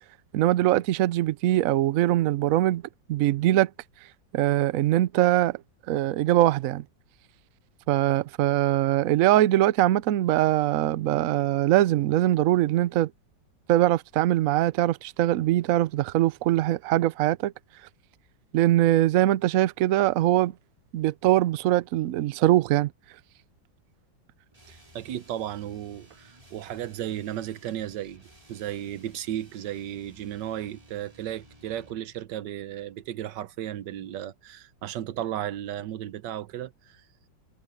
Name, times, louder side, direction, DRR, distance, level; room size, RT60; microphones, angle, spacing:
voice 1, 0.3-2.8 3.1-3.7 4.3-5.6 5.9-6.8 7.9-13.1 13.7-17.5 18.5-20.5 20.9-22.9, right 14 dB, 85° right, 0.7 m, -22 dB
sound 1, 24.5-32.1, right 1 dB, 20° right, 2.6 m, -55 dB
voice 2, 24.7-37.0, right 11 dB, 70° right, 1.3 m, -35 dB
omnidirectional pair, 2.1 m